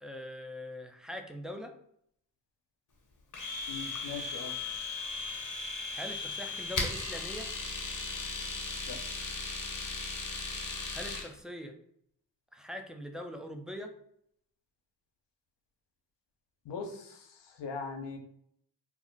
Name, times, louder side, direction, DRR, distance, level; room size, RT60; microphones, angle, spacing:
voice 1, 0.0-1.7 5.9-7.5 10.9-11.8 12.5-13.9, left 1 dB, ahead, 4 dB, 0.4 m, -42 dB
Domestic sounds home sounds, 3.3-11.3, left 3 dB, 50° left, 0.8 m, -37 dB
voice 2, 3.7-4.5 8.9-9.0 16.7-17.3 17.6-18.2, left 5 dB, 85° left, 4 dB, 0.6 m, -40 dB
2.3 x 2.1 x 3.8 m, 0.68 s
cardioid pair, 45°, 41 cm